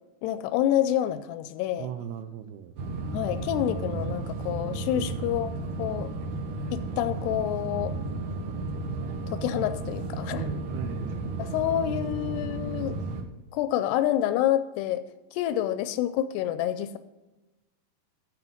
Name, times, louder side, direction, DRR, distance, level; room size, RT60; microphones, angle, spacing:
voice 1, 0.2-1.9 3.1-5.5 5.8-6.1 6.7-8.0 9.3-10.5 11.4-13.0 13.5-15.0 15.3-17.0, left 12 dB, 80° left, 13 dB, 2.4 m, -28 dB
voice 2, 1.8-2.7 4.9-5.2 10.3-11.6, right 10 dB, 85° right, 8 dB, 2.3 m, -38 dB
sound 1, 2.8-13.2, right 3 dB, 70° right, 2.0 m, -33 dB
13.0 x 4.8 x 7.1 m, 1.1 s
omnidirectional pair, 5.1 m